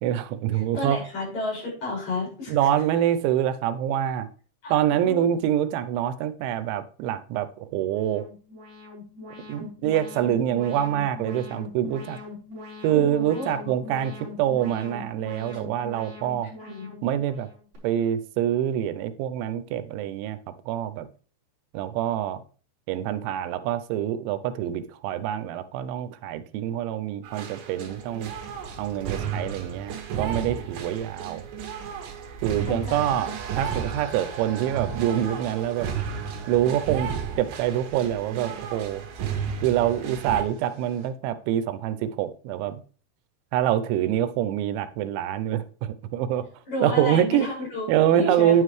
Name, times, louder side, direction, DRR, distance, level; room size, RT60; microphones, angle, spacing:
voice 1, 0.0-1.0 2.5-4.3 4.7-8.2 9.5-12.2 12.8-14.1 14.4-16.5 17.0-17.5 17.8-20.4 20.7-21.1 21.7-22.4 22.9-28.3 28.8-31.5 32.4-35.9 36.5-39.1 39.6-42.8 43.5-46.4 46.8-47.5 47.9-48.6, right 11 dB, 90° right, 3.1 m, -25 dB
voice 2, 0.5-2.6 4.6-5.3 12.9-13.6 16.6-17.0 32.7-33.2 46.7-48.6, left 2 dB, 40° left, 6.8 m, -32 dB
Alarm, 7.9-17.8, left 3 dB, 30° right, 4.5 m, -42 dB
sound 1, 27.2-40.4, right 7 dB, 75° right, 3.7 m, -33 dB
sound 2, 32.9-41.1, right 5 dB, 55° right, 3.2 m, -45 dB
9.8 x 9.5 x 3.2 m
omnidirectional pair, 5.2 m